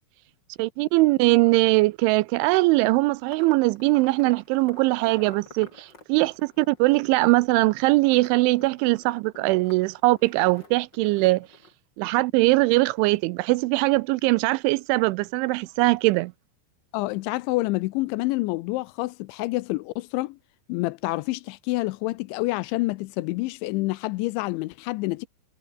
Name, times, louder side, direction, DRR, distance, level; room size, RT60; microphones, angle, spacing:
voice 1, 0.6-11.5 12.0-16.3, right 21 dB, 85° right, 2.8 m, -21 dB
sound 1, 2.3-11.7, left 2 dB, 20° left, 7.9 m, -50 dB
voice 2, 16.9-20.4 20.7-25.3, left 21 dB, 80° left, 2.8 m, -28 dB
omnidirectional pair, 5.8 m